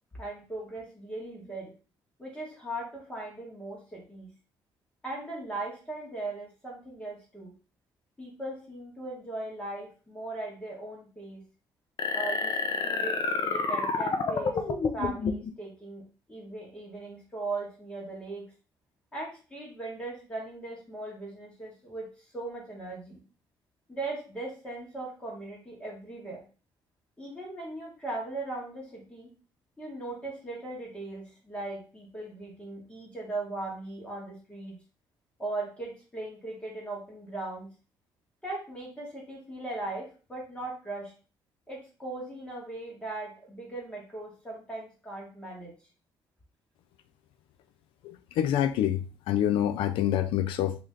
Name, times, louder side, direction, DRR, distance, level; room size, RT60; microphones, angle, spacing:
voice 1, 0.2-1.7 2.2-4.3 5.0-7.5 8.2-11.5 12.1-14.6 14.9-18.5 19.1-23.2 23.9-26.5 27.2-29.3 29.8-34.8 35.4-37.7 38.4-41.1 41.7-45.7, right 2 dB, 15° left, 1.6 m, -38 dB
sound 1, 12.0-15.5, left 4 dB, 50° left, 0.7 m, -29 dB
voice 2, 48.0-50.8, left 11 dB, 80° left, 0.4 m, -27 dB
3.2 x 2.9 x 3.7 m
cardioid pair, 95°, 9 cm